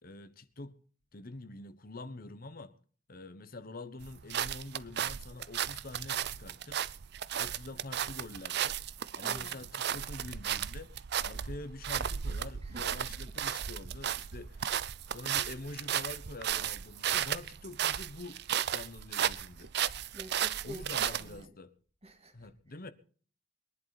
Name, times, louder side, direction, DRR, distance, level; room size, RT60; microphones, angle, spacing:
voice 1, 0.0-0.8 1.1-2.8 3.1-6.8 7.4-8.8 9.1-10.9 11.2-14.7 15.1-18.4 18.7-19.7 20.6-21.7 22.3-22.9, left 2 dB, 50° left, 1.2 m, -46 dB
sound 1, 4.0-21.4, right 9 dB, 60° right, 0.6 m, -34 dB
voice 2, 9.2-9.6 12.6-13.2 20.1-21.5 22.0-22.5, equal, 35° right, 2.6 m, -48 dB
22.0 x 11.0 x 4.3 m
head